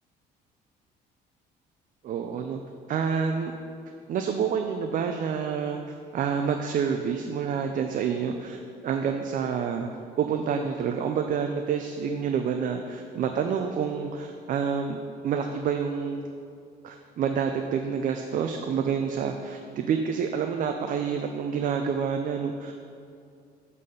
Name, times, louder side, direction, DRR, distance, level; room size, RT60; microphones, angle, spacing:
voice 1, 2.0-2.6 2.9-3.5 4.1-9.9 10.2-15.0 15.2-16.2 16.8-22.7, right 6 dB, 50° right, 5 dB, 0.5 m, -28 dB
7.3 x 4.1 x 6.4 m, 2.4 s
cardioid pair, 110°, 17 cm